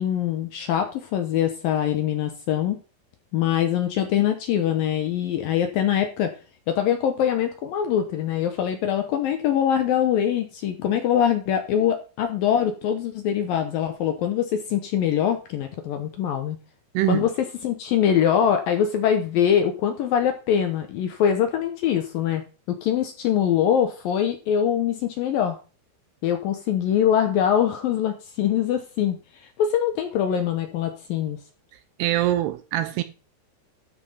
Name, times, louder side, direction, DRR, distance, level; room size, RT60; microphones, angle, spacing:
voice 1, 0.0-2.8 3.3-6.3 6.7-16.6 17.1-22.4 22.7-25.6 26.2-31.4, left 9 dB, 70° left, 2.3 m, -23 dB
voice 2, 16.9-17.2 32.0-33.0, right 14 dB, 80° right, 2.5 m, -23 dB
13.0 x 5.8 x 5.5 m
omnidirectional pair, 5.2 m